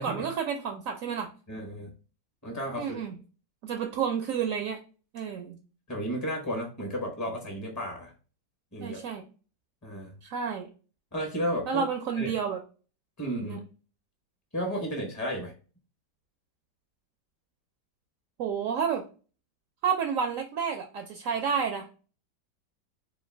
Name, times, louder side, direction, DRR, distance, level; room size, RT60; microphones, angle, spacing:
voice 1, 0.0-1.3 2.8-3.1 3.6-4.8 5.1-5.6 8.8-9.2 10.2-10.7 11.7-12.6 13.4-13.6 18.4-19.0 19.8-21.9, right 7 dB, 75° right, 5 dB, 0.8 m, -30 dB
voice 2, 1.5-1.9 2.4-3.0 5.9-8.1 8.7-9.0 9.8-10.1 11.1-11.8 12.2-12.3 13.2-13.6 14.5-15.5, equal, 25° left, 1 dB, 0.4 m, -33 dB
4.6 x 2.4 x 3.3 m, 0.36 s
omnidirectional pair, 1.9 m